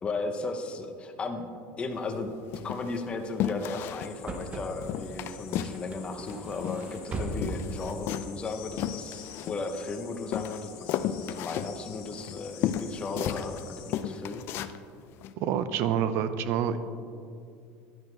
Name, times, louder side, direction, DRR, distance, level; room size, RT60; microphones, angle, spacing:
voice 1, 0.0-1.5 1.8-2.3 2.6-14.5, left 3 dB, 20° left, 5 dB, 0.8 m, -35 dB
sound 1, 1.9-2.1 2.5-3.0 3.4-4.2 4.4-4.5 4.8-5.8 6.1-7.1 7.3-9.9 10.3-13.6 13.9-14.8 15.2-15.3, left 10 dB, 50° left, 0.4 m, -33 dB
sound 2, 3.9-4.0 4.2-8.0, right 2 dB, 25° right, 0.9 m, -39 dB
sound 3, 4.0-14.0, left 9 dB, 70° left, 1.1 m, -49 dB
voice 2, 15.4-16.8, right 9 dB, 60° right, 12 dB, 0.6 m, -27 dB
11.0 x 10.5 x 3.3 m, 2.5 s
cardioid pair, 145°, 5 cm